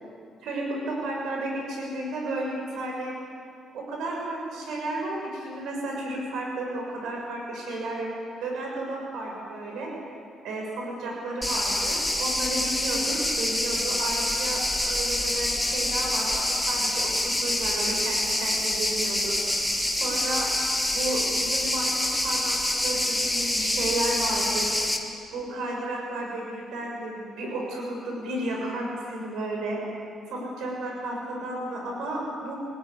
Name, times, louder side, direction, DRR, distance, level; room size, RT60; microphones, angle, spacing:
voice 1, 0.4-3.2 3.7-8.1 8.4-9.9 10.4-19.4 19.9-20.5 20.9-22.5 22.8-24.7 25.3-29.8 30.3-32.6, right 1 dB, 80° right, -1 dB, 6.6 m, -32 dB
sound 1, 11.4-25.0, left 1 dB, 5° left, 1.9 m, -26 dB
24.5 x 18.5 x 9.8 m, 2.3 s
cardioid pair, 165°, 0 cm